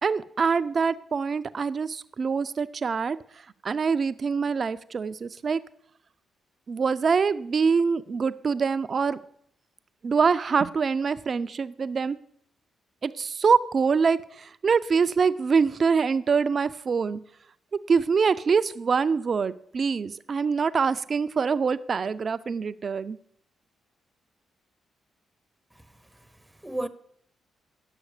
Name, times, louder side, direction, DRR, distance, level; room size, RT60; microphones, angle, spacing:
voice 1, 0.0-3.2 3.6-5.6 6.7-9.2 10.0-12.2 13.0-17.2 17.9-23.2, right 5 dB, 50° right, 0.4 m, -24 dB
voice 2, 25.7-26.9, right 1 dB, 10° right, 0.7 m, -36 dB
9.9 x 6.3 x 4.9 m
hypercardioid pair, 45°, 0 cm